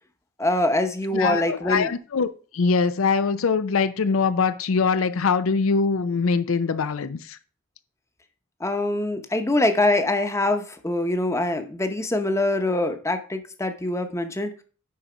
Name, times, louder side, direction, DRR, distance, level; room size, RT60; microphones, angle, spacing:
voice 1, 0.4-1.9 8.6-14.5, left 2 dB, 15° left, 0.8 m, -24 dB
voice 2, 1.1-2.3 2.5-7.4, left 5 dB, 85° left, 0.5 m, -23 dB
10.5 x 4.1 x 5.0 m
head